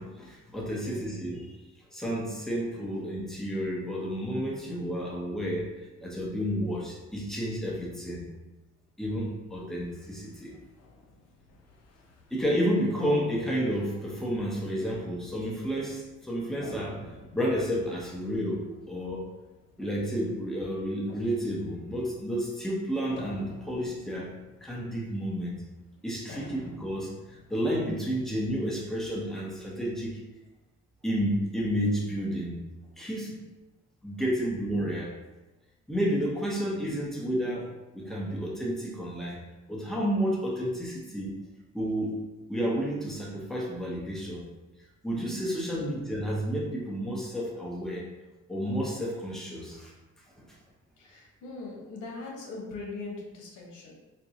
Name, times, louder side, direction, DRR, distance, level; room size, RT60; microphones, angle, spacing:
voice 1, 0.0-1.5 1.9-8.2 9.0-10.6 12.3-17.0 17.3-19.2 19.8-24.3 24.6-25.5 26.0-30.2 31.0-32.6 33.0-33.4 34.0-35.2 35.9-39.4 39.7-41.3 41.7-42.1 42.5-44.5 45.0-48.1 48.5-49.9 50.4-50.6, equal, ahead, -4 dB, 0.9 m, -31 dB
voice 2, 0.8-1.2 26.3-26.6 45.7-46.0 51.0-53.9, left 3 dB, 80° left, -2 dB, 1.0 m, -41 dB
sound 1, 9.2-29.1, left 3 dB, 55° left, 0.6 m, -51 dB
4.3 x 2.3 x 2.7 m, 1.1 s
cardioid pair, 90°, 30 cm